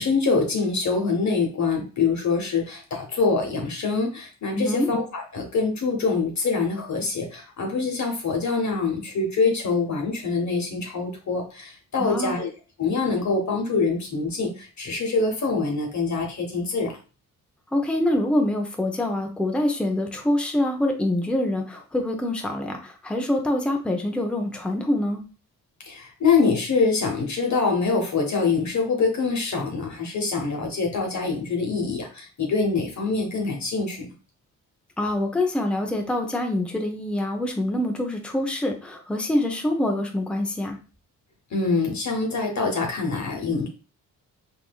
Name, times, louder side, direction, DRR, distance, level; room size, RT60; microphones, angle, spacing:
voice 1, 0.0-12.5 12.8-17.0 25.9-34.1 41.5-43.7, left 4 dB, 50° left, 1 dB, 1.0 m, -25 dB
voice 2, 4.5-4.9 12.0-12.4 17.7-25.2 35.0-40.8, left 1 dB, 5° left, 3 dB, 0.6 m, -25 dB
3.4 x 2.6 x 2.3 m, 0.34 s
cardioid pair, 60°, 36 cm